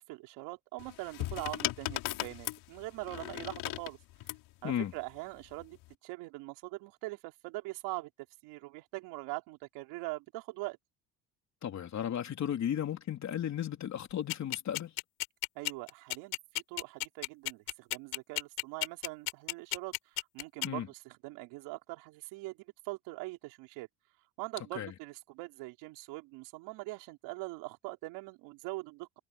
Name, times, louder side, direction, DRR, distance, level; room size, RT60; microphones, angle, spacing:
voice 1, 0.0-4.0 4.6-5.8 6.0-8.1 8.4-10.8 15.6-22.6 22.8-23.9 24.4-29.1, right 22 dB, 80° right, 4.1 m, -42 dB
sound 1, 0.8-4.5 5.5-5.9, left 17 dB, 70° left, 6.2 m, -37 dB
voice 2, 11.6-14.9 20.6-20.9 24.8-24.9, left 10 dB, 45° left, 3.4 m, -34 dB
sound 2, 14.3-20.7, left 30 dB, 90° left, 5.1 m, -33 dB
cardioid pair, 110°, 40 cm